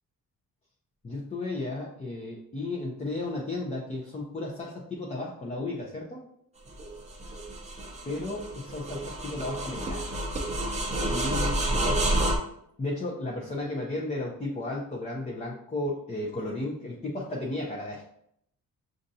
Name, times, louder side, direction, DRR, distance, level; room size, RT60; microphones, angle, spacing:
voice 1, 1.0-6.2 8.1-10.1 11.1-12.2 12.8-18.0, left 2 dB, 20° left, -3 dB, 0.5 m, -34 dB
sound 1, 6.7-12.4, right 1 dB, 20° right, 0.6 m, -29 dB
6.4 x 2.5 x 2.7 m, 0.70 s
wide cardioid pair, 165°, 36 cm